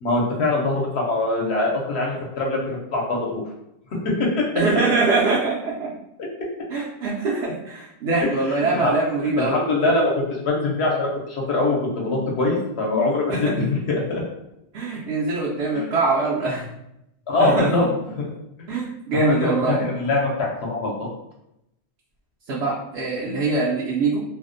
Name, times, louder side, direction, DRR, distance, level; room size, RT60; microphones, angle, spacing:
voice 1, 0.0-3.4 4.2-4.4 8.5-8.9 9.4-14.2 15.7-15.9 17.3-17.8 18.2-18.3 19.4-21.1, left 2 dB, 75° left, -2 dB, 0.8 m, -23 dB
voice 2, 4.5-5.9 6.7-9.6 13.3-13.4 14.7-16.7 17.4-17.7 18.7-19.8 22.5-24.2, right 3 dB, 80° right, -6 dB, 0.9 m, -23 dB
2.5 x 2.0 x 2.5 m, 0.84 s
omnidirectional pair, 1.1 m